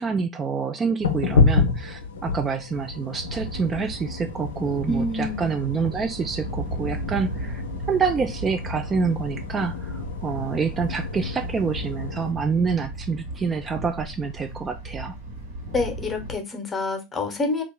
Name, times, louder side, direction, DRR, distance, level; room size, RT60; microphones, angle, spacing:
voice 1, 0.0-7.6 7.9-15.2, right 5 dB, 25° right, 0.3 m, -27 dB
sound 1, 1.0-12.3, left 4 dB, 75° left, 0.4 m, -29 dB
Thunder, 3.2-16.3, right 1 dB, 70° right, 1.3 m, -36 dB
voice 2, 4.9-5.5 15.7-17.6, left 2 dB, 25° left, 1.0 m, -27 dB
2.8 x 2.4 x 3.6 m
figure-of-eight pair, 80°, 0 cm